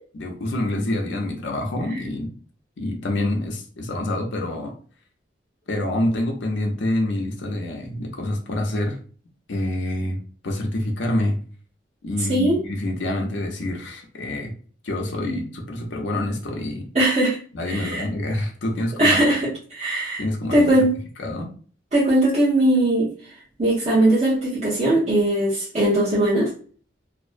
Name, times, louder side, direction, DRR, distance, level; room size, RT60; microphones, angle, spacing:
voice 1, 0.1-2.3 2.8-4.7 5.7-9.0 9.5-10.2 10.4-11.4 12.0-14.5 14.8-16.9 17.5-19.2 20.2-20.7 21.2-21.5, left 1 dB, 75° left, 2 dB, 0.5 m, -26 dB
voice 2, 12.3-12.6 16.9-17.4 17.6-18.0 19.0-20.2 20.5-20.9 21.9-23.1 23.6-26.5, right 1 dB, 40° right, -9 dB, 0.7 m, -19 dB
2.4 x 2.0 x 2.4 m, 0.42 s
head